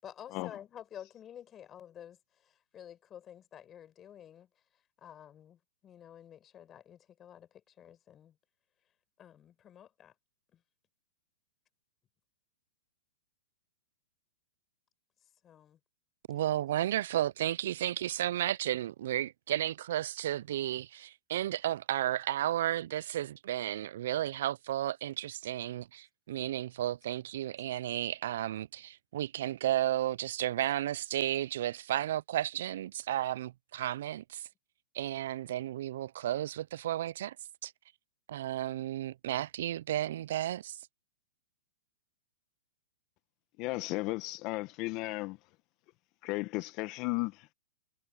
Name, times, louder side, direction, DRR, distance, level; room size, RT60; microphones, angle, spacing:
voice 1, 0.0-4.5 5.0-8.4 9.2-10.1 10.5-10.6 15.4-15.8, left 10 dB, 25° left, 6.4 m, -51 dB
voice 2, 16.3-34.5 34.9-37.4 37.6-37.7 38.3-40.8, right 12 dB, 65° right, 0.4 m, -33 dB
voice 3, 43.6-45.4 46.2-47.5, left 22 dB, 40° left, 1.2 m, -35 dB
hypercardioid pair, 130°, 0 cm